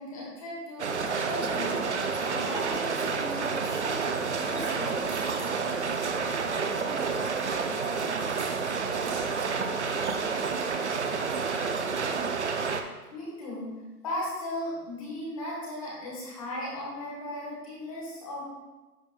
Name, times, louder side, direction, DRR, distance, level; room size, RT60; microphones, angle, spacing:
voice 1, 0.0-5.1 13.1-13.7 14.0-18.5, left 1 dB, 20° left, -4 dB, 1.4 m, -37 dB
sound 1, 0.8-12.8, right 5 dB, 50° right, 0.5 m, -29 dB
sound 2, 3.3-10.7, right 2 dB, 30° right, 1.5 m, -49 dB
voice 2, 6.6-12.4, right 5 dB, 85° right, 5 dB, 1.0 m, -43 dB
10.5 x 5.1 x 2.3 m, 1.2 s
hypercardioid pair, 175°, 47 cm